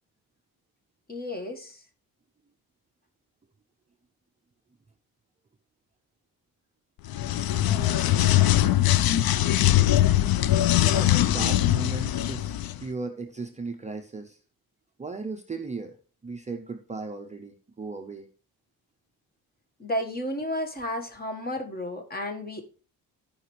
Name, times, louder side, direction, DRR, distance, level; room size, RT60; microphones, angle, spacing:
voice 1, 1.1-1.8 19.8-22.6, left 1 dB, 25° left, 5 dB, 1.5 m, -32 dB
sound 1, 7.1-12.8, left 13 dB, 70° left, 0.6 m, -22 dB
voice 2, 10.8-14.4 15.0-16.0 16.2-18.3, right 3 dB, 20° right, 4 dB, 0.5 m, -36 dB
14.5 x 5.0 x 3.2 m, 0.39 s
cardioid pair, 135°, 37 cm